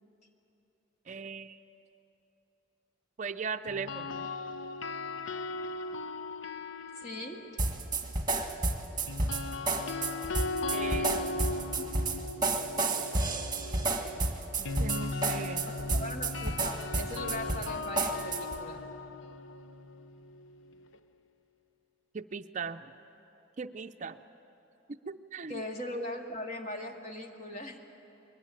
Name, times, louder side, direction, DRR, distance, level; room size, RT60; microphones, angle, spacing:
voice 1, 1.1-1.6 3.2-4.2 10.7-11.3 14.6-15.7 22.1-22.9 23.6-24.2 24.9-25.6, right 5 dB, 40° right, 9 dB, 0.5 m, -38 dB
sound 1, 3.7-7.8 9.1-21.0, left 3 dB, 85° left, 0.7 m, -38 dB
voice 2, 7.0-7.4 15.7-18.8 25.5-27.8, left 1 dB, 35° left, 2 dB, 2.0 m, -40 dB
sound 2, 7.6-18.6, right 3 dB, 20° right, 1.6 m, -31 dB
22.0 x 20.0 x 8.9 m, 3.0 s
head